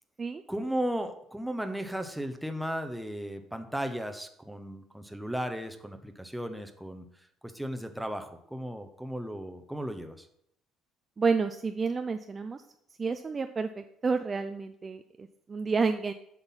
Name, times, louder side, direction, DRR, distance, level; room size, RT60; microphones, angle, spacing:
voice 1, 0.5-7.1 7.4-10.3, equal, ahead, 6 dB, 0.8 m, -35 dB
voice 2, 11.2-12.6 13.0-16.1, right 4 dB, 25° right, 8 dB, 0.4 m, -30 dB
7.9 x 5.9 x 5.6 m, 0.74 s
cardioid pair, 135°, 0 cm